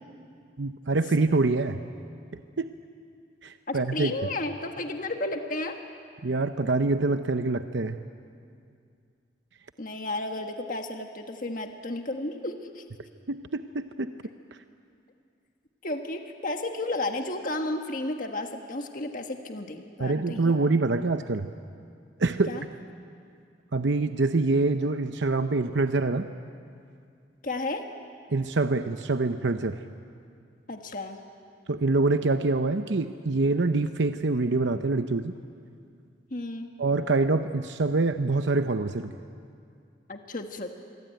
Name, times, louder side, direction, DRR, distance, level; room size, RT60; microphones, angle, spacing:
voice 1, 0.6-1.8 2.6-2.7 3.4-4.2 6.2-8.0 13.3-14.1 20.0-21.5 22.2-22.5 23.7-26.3 28.3-29.8 31.7-35.3 36.8-39.1, right 3 dB, 80° right, 9 dB, 0.8 m, -25 dB
voice 2, 3.7-5.8 9.8-12.8 15.8-20.6 22.5-22.6 27.4-27.9 30.7-31.2 36.3-36.7 40.1-40.7, left 2 dB, 45° left, 4 dB, 1.5 m, -33 dB
26.5 x 23.5 x 9.2 m, 2.3 s
head